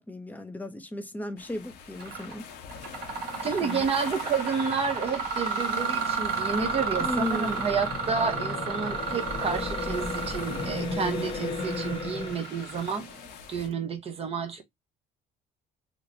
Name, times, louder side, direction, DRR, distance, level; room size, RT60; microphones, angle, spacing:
voice 1, 0.0-2.5 3.4-3.8 7.0-7.6, left 1 dB, 10° left, 0.6 m, -35 dB
sound 1, 1.4-13.7, left 7 dB, 75° left, 1.0 m, -45 dB
Mechanisms, 2.0-2.3 2.7-13.3, right 5 dB, 65° right, 1.5 m, -33 dB
voice 2, 3.4-13.1 13.5-14.6, right 5 dB, 35° right, 0.9 m, -30 dB
sound 2, 6.5-12.3, left 3 dB, 30° left, 1.0 m, -35 dB
3.2 x 2.1 x 3.8 m
cardioid pair, 110°, 17 cm